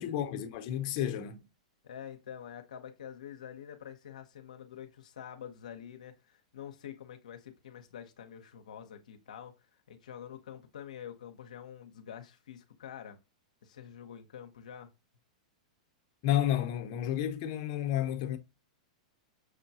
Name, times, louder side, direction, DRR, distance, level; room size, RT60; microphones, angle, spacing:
voice 1, 0.0-1.5 16.2-18.4, left 11 dB, 50° left, 0.7 m, -31 dB
voice 2, 1.8-13.2 13.6-14.9, left 9 dB, 85° left, 0.6 m, -47 dB
6.2 x 2.2 x 2.6 m
hypercardioid pair, 125°, 4 cm